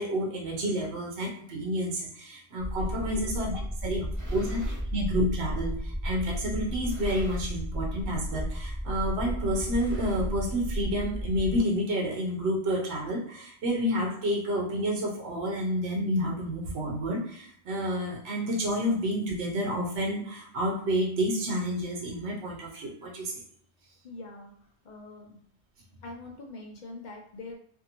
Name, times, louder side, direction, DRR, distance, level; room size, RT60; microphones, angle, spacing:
voice 1, 0.0-3.5 3.8-23.4, equal, 75° right, -2 dB, 0.9 m, -30 dB
sound 1, 2.6-11.6, equal, ahead, 0.3 m, -33 dB
sound 2, 4.1-4.9 5.7-5.8 6.7-7.7 8.0-8.3 8.5-8.6 9.5-10.6, equal, 20° right, 0.8 m, -50 dB
voice 2, 24.0-24.5 24.8-25.4 26.0-27.6, left 2 dB, 55° left, 0 dB, 0.6 m, -44 dB
2.6 x 2.6 x 2.8 m, 0.62 s
omnidirectional pair, 1.1 m